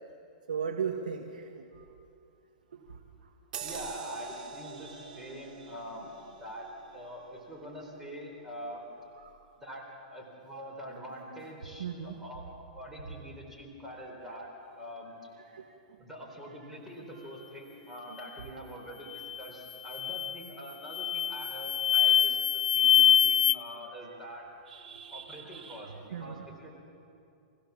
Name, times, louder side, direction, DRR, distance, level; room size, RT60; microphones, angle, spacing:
voice 1, 0.5-1.6 4.6-5.7 9.2-9.3 11.8-12.2 14.8-14.9 15.5-15.7 17.1-17.3 24.7-26.5, right 7 dB, 85° right, 3 dB, 1.5 m, -39 dB
sound 1, 3.5-8.5 8.9-9.1, right 6 dB, 70° right, 3.4 m, -45 dB
voice 2, 3.6-6.7 6.9-8.8 9.6-14.5 14.8-15.1 16.0-24.5 25.1-26.7, equal, 5° right, -2 dB, 4.3 m, -44 dB
sound 2, 19.1-19.4 19.9-20.4 20.9-23.5, left 10 dB, 65° left, 0.5 m, -24 dB
26.5 x 16.0 x 7.3 m, 2.6 s
hypercardioid pair, 135°, 5 cm